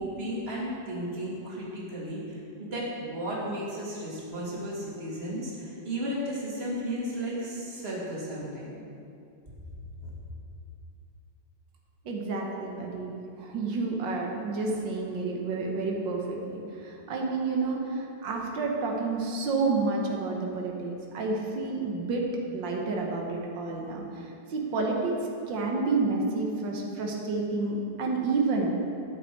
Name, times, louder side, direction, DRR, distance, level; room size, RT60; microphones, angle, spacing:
voice 1, 0.0-8.7 10.0-10.1, equal, 35° right, -5 dB, 2.4 m, -34 dB
voice 2, 12.1-13.1 13.4-22.2 22.5-25.2 25.5-28.8, right 3 dB, 90° right, 0 dB, 1.9 m, -30 dB
12.5 x 8.0 x 4.6 m, 2.5 s
omnidirectional pair, 1.9 m